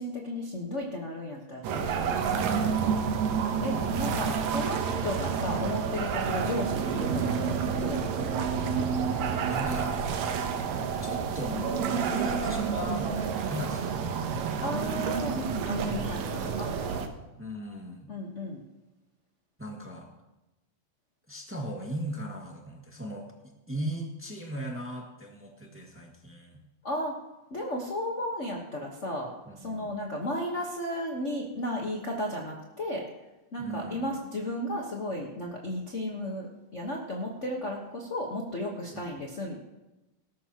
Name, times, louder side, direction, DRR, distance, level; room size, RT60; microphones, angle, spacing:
voice 1, 0.0-3.1 3.6-8.2 14.6-17.1 18.1-18.6 26.8-27.1 27.5-29.3 29.6-33.1 33.5-39.6, left 1 dB, 60° left, -1 dB, 0.7 m, -34 dB
sound 1, 1.6-17.1, right 6 dB, 75° right, 2.2 m, -29 dB
voice 2, 9.5-9.9 11.0-14.2 17.4-18.1 19.6-20.1 21.3-23.3 23.7-26.6 29.4-29.9 33.6-34.1 38.9-39.1, equal, 5° right, -1 dB, 1.2 m, -38 dB
19.0 x 12.0 x 3.0 m, 1.0 s
omnidirectional pair, 3.5 m